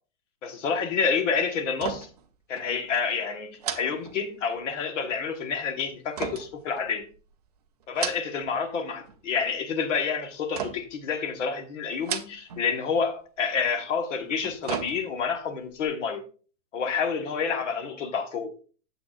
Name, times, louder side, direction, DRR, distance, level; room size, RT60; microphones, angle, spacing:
voice 1, 0.4-2.1 2.5-7.1 7.9-16.2 16.7-18.5, left 6 dB, 60° left, 1.5 m, -28 dB
sound 1, 1.7-2.3 2.6-2.7 3.6-4.7 6.2-7.3 7.8-8.6 8.9-9.5 10.5-11.1 11.9-12.7 13.0-13.1 14.2-15.4 15.8-15.9, right 8 dB, 30° right, 0.4 m, -35 dB
8.8 x 7.4 x 2.5 m
supercardioid pair, 170°, 41 cm